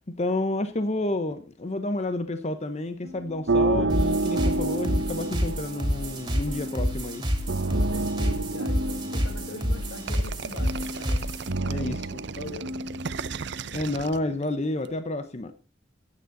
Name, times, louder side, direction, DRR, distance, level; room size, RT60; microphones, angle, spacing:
voice 1, 0.1-7.3 11.7-12.2 13.7-15.5, left 2 dB, 35° left, 0.9 m, -30 dB
sound 1, 3.0-14.2, right 2 dB, 80° right, 1.0 m, -30 dB
sound 2, 3.9-11.5, equal, 25° right, 3.2 m, -29 dB
voice 2, 7.9-11.3 11.6-12.0 12.4-12.8, left 1 dB, 70° left, 1.8 m, -42 dB
sound 3, 10.1-14.9, right 6 dB, 65° right, 0.6 m, -37 dB
14.5 x 9.6 x 3.8 m
head